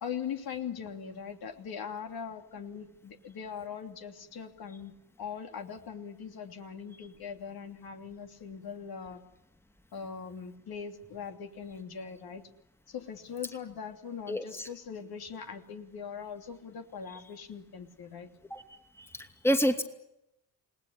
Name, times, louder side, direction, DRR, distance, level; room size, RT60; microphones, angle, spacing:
voice 1, 0.0-9.2 9.9-12.5 12.9-18.3, left 7 dB, 55° left, 4 dB, 3.1 m, -41 dB
voice 2, 14.3-14.7 18.5-18.6 19.0-19.8, equal, 5° left, 7 dB, 2.5 m, -28 dB
29.0 x 19.5 x 9.9 m, 0.88 s
hypercardioid pair, 45°, 44 cm